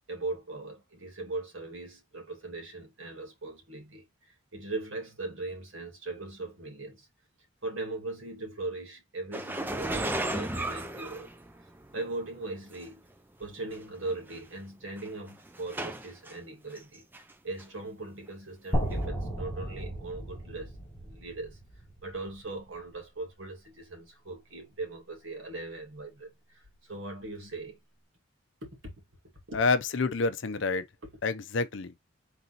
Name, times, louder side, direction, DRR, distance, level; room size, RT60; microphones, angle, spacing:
voice 1, 0.1-7.1 7.6-11.3 11.9-13.1 13.4-20.7 21.0-21.6 22.0-27.8 28.6-28.9 29.5-29.6, right 2 dB, 65° right, 2.1 m, -39 dB
sound 1, 9.3-11.9 12.7-12.8 13.7-13.8 14.1-14.4 15.0-16.3 16.8-17.3 17.6-17.7 18.9-19.0, right 1 dB, 10° right, 0.4 m, -34 dB
sound 2, 18.7-22.8, right 1 dB, 10° left, 1.4 m, -34 dB
voice 2, 29.5-30.9 31.2-31.9, left 4 dB, 60° left, 0.6 m, -28 dB
3.9 x 3.0 x 3.9 m
head